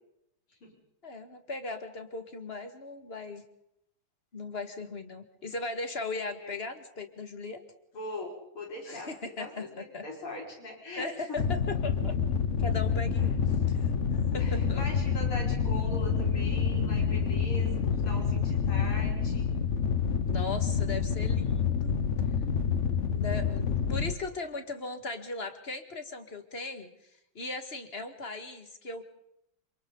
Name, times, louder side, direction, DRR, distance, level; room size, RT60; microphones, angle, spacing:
voice 1, 1.0-3.4 4.3-7.6 8.9-10.0 11.0-12.2 12.6-13.4 13.7-13.9 14.3-14.8 20.3-21.9 23.1-26.9 27.3-29.0, left 3 dB, 30° left, 7 dB, 2.1 m, -38 dB
voice 2, 7.9-11.4 14.4-19.5, left 1 dB, 90° left, -1 dB, 6.5 m, -41 dB
sound 1, 11.4-24.1, left 6 dB, 45° left, 1.1 m, -28 dB
27.5 x 27.0 x 4.0 m, 0.78 s
omnidirectional pair, 2.3 m